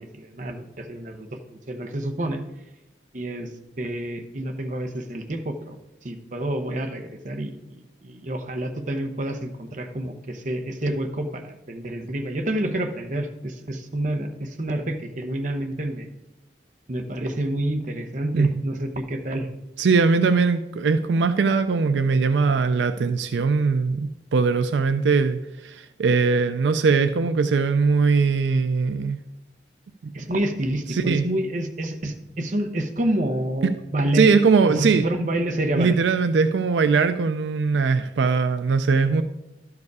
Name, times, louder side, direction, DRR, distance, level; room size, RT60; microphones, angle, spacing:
voice 1, 0.0-2.4 3.1-3.5 3.8-5.8 6.0-16.1 16.9-19.5 30.1-34.3 34.8-36.0, right 1 dB, 45° right, 6 dB, 0.8 m, -28 dB
voice 2, 19.8-29.2 30.9-31.3 34.1-35.1 35.7-39.2, right 4 dB, 80° right, 10 dB, 0.4 m, -20 dB
11.5 x 4.8 x 4.8 m, 0.94 s
head